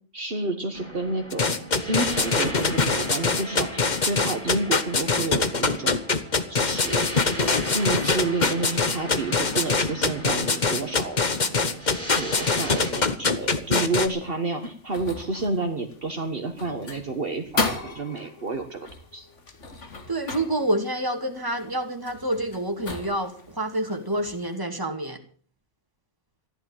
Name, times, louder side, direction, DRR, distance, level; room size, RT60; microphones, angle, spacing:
voice 1, 0.1-1.6 1.8-6.0 6.5-7.1 7.6-11.2 12.2-18.9 19.1-19.3, right 3 dB, 50° right, 5 dB, 1.7 m, -30 dB
sound 1, 0.7-12.9, equal, 10° left, 4.3 m, -37 dB
sound 2, 1.3-14.1, left 4 dB, 40° left, 1.3 m, -23 dB
sound 3, 13.3-24.6, left 3 dB, 80° left, 2.3 m, -37 dB
voice 2, 20.1-25.2, right 1 dB, 15° right, 4 dB, 2.4 m, -28 dB
14.5 x 11.5 x 7.3 m, 0.43 s
omnidirectional pair, 1.2 m